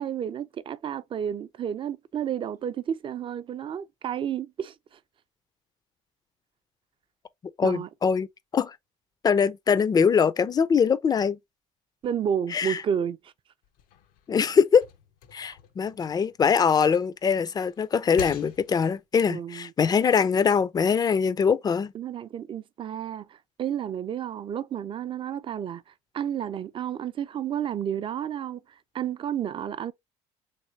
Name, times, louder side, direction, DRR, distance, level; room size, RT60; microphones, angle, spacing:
voice 1, 0.0-4.7 7.6-7.9 12.0-13.3 15.4-15.6 19.3-19.7 21.9-25.8 26.1-28.6 28.9-29.9, right 9 dB, 35° right, 0.4 m, -31 dB
voice 2, 7.6-8.3 8.5-8.7 9.2-11.4 12.5-12.8 14.3-14.8 15.3-21.9, left 6 dB, 25° left, 0.4 m, -22 dB
sound 1, 13.6-16.8 17.3-19.1, left 9 dB, 75° left, 0.5 m, -46 dB
3.3 x 3.0 x 2.7 m
supercardioid pair, 90°, 14 cm